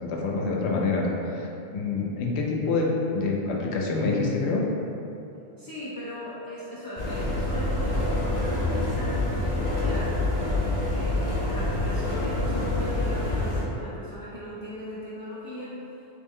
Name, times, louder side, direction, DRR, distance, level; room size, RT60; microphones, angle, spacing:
voice 1, 0.0-2.9 3.1-4.7, left 3 dB, 85° left, -2 dB, 0.9 m, -26 dB
voice 2, 5.6-15.8, left 1 dB, 35° left, -10 dB, 0.4 m, -38 dB
sound 1, 7.0-13.6, left 1 dB, 55° left, 1.1 m, -26 dB
3.3 x 3.2 x 3.6 m, 2.9 s
omnidirectional pair, 1.1 m